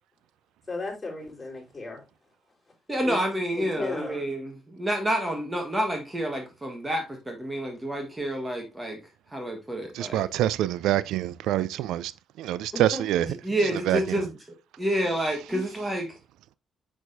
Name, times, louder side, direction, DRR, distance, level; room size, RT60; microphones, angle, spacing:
voice 1, 0.7-2.0 3.0-3.2 3.6-4.2 12.7-13.0 15.5-15.6, left 2 dB, 20° left, 4.0 m, -34 dB
voice 2, 2.9-9.0 9.3-10.3 13.2-14.3 14.8-16.2, right 1 dB, 15° right, 1.4 m, -29 dB
voice 3, 9.9-12.1 12.4-13.3 13.7-14.2, right 13 dB, 90° right, 0.3 m, -26 dB
6.3 x 5.8 x 2.6 m
cardioid pair, 90°, 0 cm